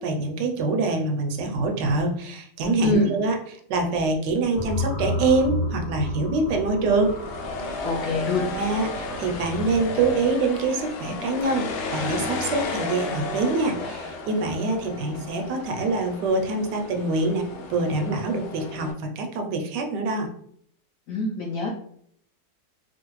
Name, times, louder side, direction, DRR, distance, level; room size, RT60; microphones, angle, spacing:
voice 1, 0.0-3.4 3.7-7.1 7.7-7.8 8.5-17.4 17.7-20.3, right 3 dB, 80° right, 3 dB, 1.2 m, -25 dB
voice 2, 2.8-3.1 7.8-8.5 21.1-21.7, left 3 dB, 70° left, -3 dB, 0.8 m, -25 dB
sound 1, 4.5-10.3, left 1 dB, 30° right, 0.7 m, -32 dB
sound 2, 7.0-18.9, left 3 dB, 85° left, 1.3 m, -33 dB
3.1 x 2.3 x 3.0 m, 0.66 s
omnidirectional pair, 1.9 m